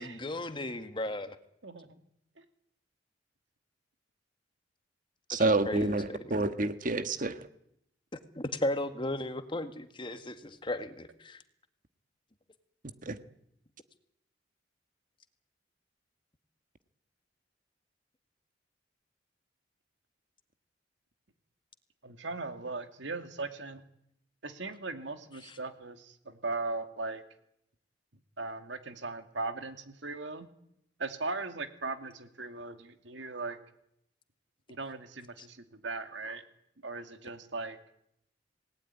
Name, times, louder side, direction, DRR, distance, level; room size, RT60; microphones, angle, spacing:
voice 1, 0.0-1.4 5.4-6.4 8.4-11.4, left 1 dB, 25° left, 9 dB, 1.8 m, -35 dB
voice 2, 1.6-2.0 2.4-2.5 22.0-23.8 24.4-27.2 28.4-30.5 31.0-33.6 34.7-36.4 36.8-37.8, right 3 dB, 75° right, 8 dB, 2.5 m, -38 dB
voice 3, 5.3-7.3 13.0-13.2, right 2 dB, 45° right, 10 dB, 1.5 m, -28 dB
27.5 x 19.0 x 9.7 m, 0.77 s
head